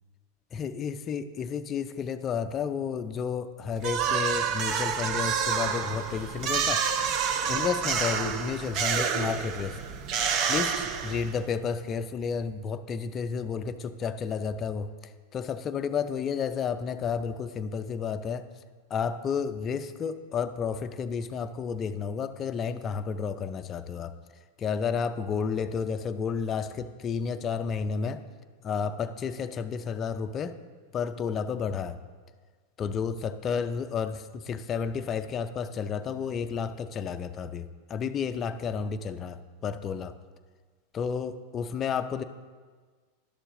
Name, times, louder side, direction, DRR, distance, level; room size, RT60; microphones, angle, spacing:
voice 1, 0.5-7.1 7.5-9.8 10.5-18.5 18.9-24.1 24.6-28.2 28.6-30.6 30.9-32.0 32.8-40.1 40.9-42.2, left 6 dB, 30° left, 8 dB, 0.4 m, -31 dB
sound 1, 3.8-11.5, right 7 dB, 45° right, 0.7 m, -28 dB
11.5 x 6.8 x 3.7 m, 1.5 s
supercardioid pair, 125°, 0 cm